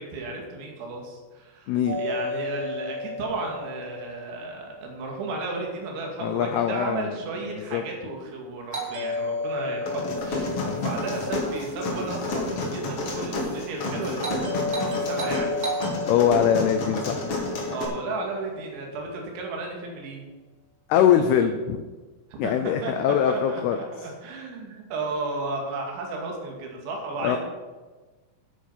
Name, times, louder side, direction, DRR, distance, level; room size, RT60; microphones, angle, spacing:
voice 1, 0.0-15.6 17.7-20.2 22.3-22.5 22.8-22.9 23.3-27.4, right 3 dB, 80° right, 0 dB, 4.5 m, -34 dB
Doorbell, 1.9-5.8 8.7-12.9 14.2-18.6, left 2 dB, 30° right, 2.0 m, -33 dB
voice 2, 6.2-7.1 7.7-7.8 10.6-10.9 16.1-17.2 20.9-21.8 22.4-23.8 27.2-27.4, left 9 dB, 85° left, 7 dB, 2.2 m, -22 dB
sound 1, 9.9-17.8, left 2 dB, 45° left, 2.0 m, -30 dB
sound 2, 10.2-15.3, right 1 dB, 50° right, 4.1 m, -47 dB
11.5 x 8.7 x 5.7 m, 1.3 s
omnidirectional pair, 5.4 m